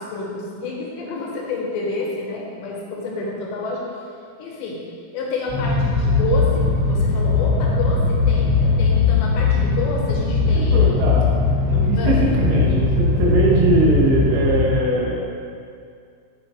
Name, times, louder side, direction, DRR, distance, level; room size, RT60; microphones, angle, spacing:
voice 1, 0.0-3.9 4.4-4.8 5.1-11.0 12.0-12.2, left 3 dB, 80° left, -3 dB, 3.0 m, -29 dB
sound 1, 5.5-14.6, left 4 dB, 70° right, 4.0 m, -19 dB
voice 2, 10.4-15.1, right 2 dB, 85° right, -4 dB, 3.6 m, -21 dB
10.5 x 4.3 x 3.1 m, 2.3 s
omnidirectional pair, 5.4 m